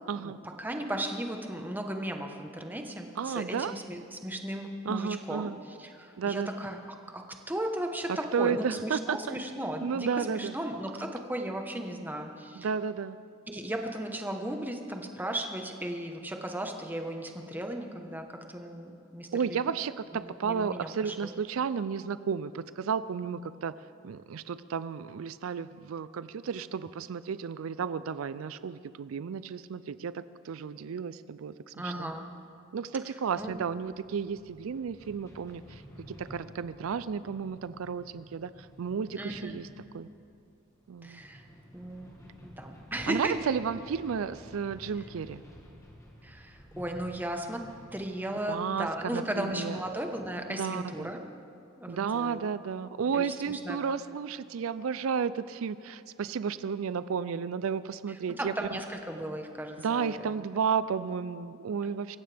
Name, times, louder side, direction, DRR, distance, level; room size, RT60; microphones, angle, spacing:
voice 1, 0.1-0.4 3.2-3.8 4.9-5.6 6.2-6.5 8.3-9.4 9.8-10.5 12.6-13.2 19.3-23.7 24.0-32.1 32.7-35.8 36.1-38.5 38.8-39.7 39.9-40.1 40.9-41.2 43.1-45.4 48.5-48.9 49.1-49.8 50.5-51.1 51.9-58.5 59.8-62.2, right 6 dB, 85° right, 15 dB, 0.4 m, -32 dB
voice 2, 0.6-6.8 7.1-12.7 13.5-19.7 20.1-21.3 31.7-32.3 33.4-33.5 39.1-39.6 41.0-41.4 41.7-42.1 42.4-43.5 46.2-51.2 51.8-52.5 53.0-53.8 58.4-60.3, right 1 dB, 10° right, 3 dB, 1.1 m, -36 dB
sound 1, 33.4-50.9, equal, 15° left, 2.0 m, -53 dB
25.0 x 15.5 x 3.5 m, 2.5 s
head